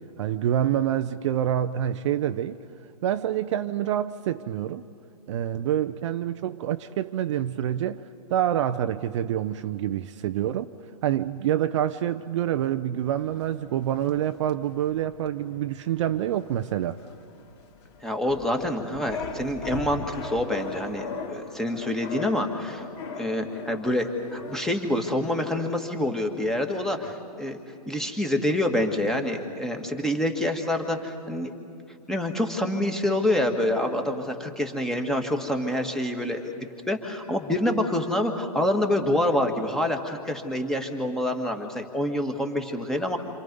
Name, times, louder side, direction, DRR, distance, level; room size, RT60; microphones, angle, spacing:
voice 1, 0.0-2.6 3.0-4.8 5.3-10.7 11.0-17.0, right 11 dB, 45° right, 0.7 m, -27 dB
sound 1, 13.0-25.3, left 4 dB, 45° left, 2.9 m, -40 dB
voice 2, 18.0-22.8 23.2-27.6 27.9-31.5 32.1-43.2, left 1 dB, ahead, 1.8 m, -27 dB
28.0 x 27.0 x 5.4 m
hypercardioid pair, 130°, 21 cm